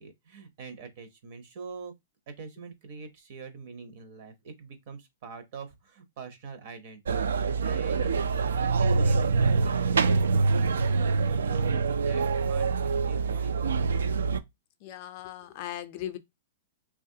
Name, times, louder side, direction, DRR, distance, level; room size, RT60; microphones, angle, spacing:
voice 1, 0.0-1.9 2.3-11.0 11.4-13.8, right 5 dB, 50° right, 0.7 m, -44 dB
sound 1, 7.1-14.4, right 4 dB, 90° right, 0.3 m, -25 dB
voice 2, 14.8-16.2, left 12 dB, 40° left, 0.4 m, -38 dB
3.0 x 2.3 x 2.7 m
hypercardioid pair, 150°, 0 cm